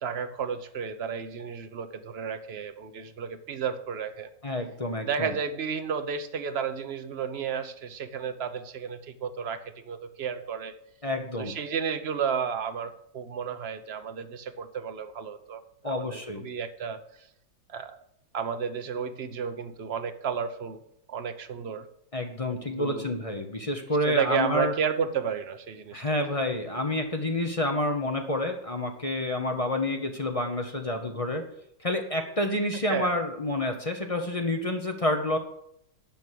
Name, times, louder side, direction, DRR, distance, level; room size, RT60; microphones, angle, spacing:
voice 1, 0.0-4.3 5.0-10.7 11.4-17.0 17.7-18.0 18.3-20.8 21.1-21.9 22.7-23.1 24.0-26.2 32.7-33.2, right 7 dB, 55° right, 9 dB, 0.7 m, -32 dB
voice 2, 4.4-5.3 11.0-11.5 15.8-16.5 22.1-24.7 25.9-31.5 31.8-35.4, left 1 dB, 30° left, 4 dB, 0.7 m, -29 dB
10.5 x 6.2 x 6.8 m, 0.75 s
omnidirectional pair, 2.0 m